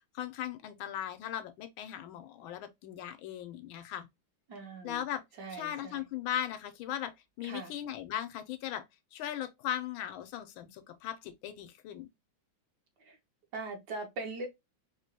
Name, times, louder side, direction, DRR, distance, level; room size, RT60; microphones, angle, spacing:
voice 1, 0.1-4.1 4.8-5.2 5.5-8.9 9.1-12.1, left 11 dB, 80° left, 1.4 m, -38 dB
voice 2, 4.5-5.0 5.4-6.0 7.4-7.7 13.1-13.2 13.5-14.5, right 3 dB, 65° right, 1.2 m, -41 dB
4.7 x 2.2 x 2.7 m
omnidirectional pair, 2.2 m